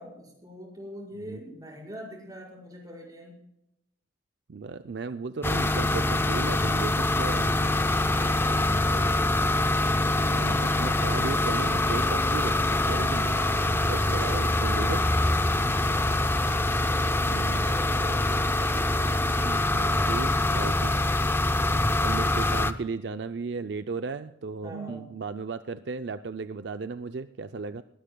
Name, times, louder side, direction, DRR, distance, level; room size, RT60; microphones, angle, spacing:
voice 1, 0.0-3.4 8.1-9.3 13.7-14.2 17.6-18.3 19.7-20.1 20.6-21.0 21.4-21.9 24.6-25.1, equal, 20° right, -3 dB, 5.4 m, -44 dB
voice 2, 4.5-7.7 10.2-12.6 12.8-13.4 13.8-15.0 17.2-17.8 18.7-21.0 21.7-27.8, right 4 dB, 65° right, 10 dB, 0.5 m, -36 dB
sound 1, 5.4-22.7, left 2 dB, 15° left, 0.6 m, -24 dB
sound 2, 10.8-19.4, right 2 dB, 85° right, 5.9 m, -49 dB
20.5 x 16.5 x 2.3 m, 0.83 s
head